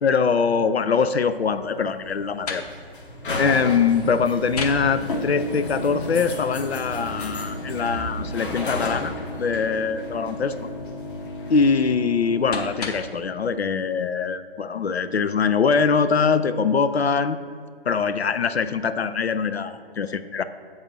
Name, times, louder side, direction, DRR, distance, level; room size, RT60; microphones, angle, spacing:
voice 1, 0.0-2.6 3.4-10.6 11.5-17.4 17.9-20.4, left 5 dB, 90° left, 11 dB, 0.5 m, -23 dB
sound 1, 1.3-11.9, left 1 dB, 55° left, 1.3 m, -34 dB
sound 2, 2.0-13.2, left 2 dB, 40° left, 0.9 m, -36 dB
7.5 x 4.0 x 5.9 m, 2.2 s
figure-of-eight pair, 135°, 31 cm